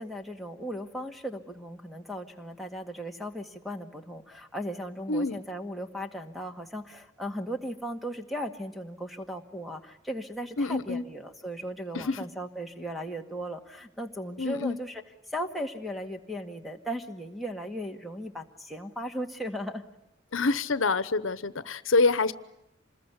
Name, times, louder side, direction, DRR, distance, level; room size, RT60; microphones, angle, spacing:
voice 1, 0.0-15.0 15.3-19.8, equal, ahead, 0 dB, 1.9 m, -37 dB
voice 2, 5.1-5.4 10.6-11.0 11.9-12.2 14.4-14.8 20.3-22.3, left 3 dB, 85° left, 14 dB, 1.0 m, -26 dB
27.0 x 21.0 x 9.6 m, 0.86 s
head